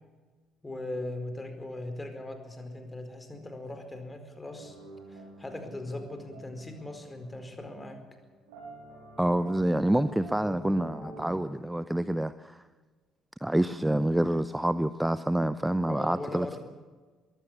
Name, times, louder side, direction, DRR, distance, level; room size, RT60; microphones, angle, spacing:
voice 1, 0.6-4.8 5.1-8.0 15.8-16.6, left 2 dB, 15° left, 7 dB, 4.6 m, -39 dB
sound 1, 4.6-11.4, equal, 70° right, 7.9 m, -47 dB
voice 2, 9.2-12.6 13.4-16.6, right 1 dB, 5° right, 14 dB, 0.7 m, -27 dB
22.5 x 16.0 x 8.7 m, 1.4 s
figure-of-eight pair, 50°, 0 cm